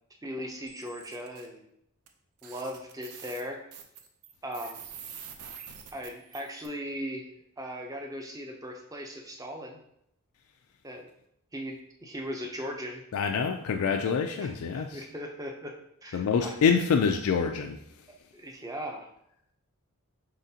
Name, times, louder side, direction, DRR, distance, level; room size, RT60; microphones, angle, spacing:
voice 1, 0.2-1.7 2.4-3.7 4.4-4.8 5.9-7.3 7.6-9.8 10.8-11.1 11.5-13.0 14.4-15.8 16.0-16.5 18.3-19.1, equal, 15° right, 2 dB, 0.5 m, -38 dB
sound 1, 0.7-1.5 2.1-2.2 2.4-6.7, right 7 dB, 85° right, 0.6 m, -46 dB
voice 2, 13.1-15.0 16.1-17.8, left 6 dB, 70° left, 5 dB, 0.3 m, -26 dB
4.9 x 3.7 x 2.7 m, 0.75 s
head